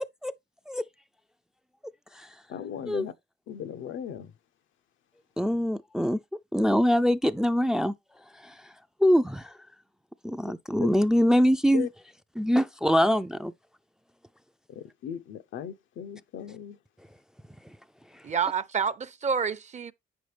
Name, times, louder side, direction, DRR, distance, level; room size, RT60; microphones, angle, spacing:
voice 1, 2.5-3.1 3.5-4.3 10.8-10.9 11.7-11.9 14.8-16.8, left 9 dB, 80° left, 0.8 m, -37 dB
voice 2, 5.4-6.2 6.5-7.9 8.4-8.5 9.0-9.5 10.2-11.9 12.4-13.5, equal, 5° right, 0.4 m, -23 dB
voice 3, 18.2-19.9, right 6 dB, 35° right, 0.7 m, -28 dB
8.6 x 6.3 x 3.3 m
cardioid pair, 90°, 20 cm